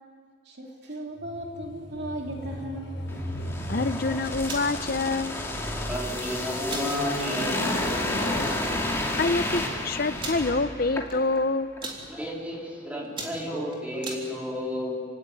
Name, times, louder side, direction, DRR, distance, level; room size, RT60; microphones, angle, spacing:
voice 1, 0.4-3.0, right 1 dB, 55° right, 0 dB, 3.1 m, -36 dB
sound 1, 1.2-5.9 6.6-9.2 9.8-10.0, equal, 65° left, 4.4 m, -36 dB
sound 2, 3.1-11.4 11.8-11.9, left 1 dB, 15° left, 2.6 m, -31 dB
voice 2, 3.7-5.5 9.2-11.7, left 3 dB, 45° left, 13 dB, 0.7 m, -26 dB
sound 3, 4.3-4.7 5.9-6.3 6.7-6.9 7.4-7.5 7.8-8.1 8.9-9.0 9.1-9.2 10.2-10.4 11.1-11.4 11.6-12.0 12.6-12.7 13.0-14.2, right 3 dB, 25° right, 3.5 m, -36 dB
voice 3, 5.9-7.7 12.1-15.0, left 1 dB, 10° right, -2 dB, 3.5 m, -32 dB
28.0 x 17.5 x 9.7 m, 2.3 s
head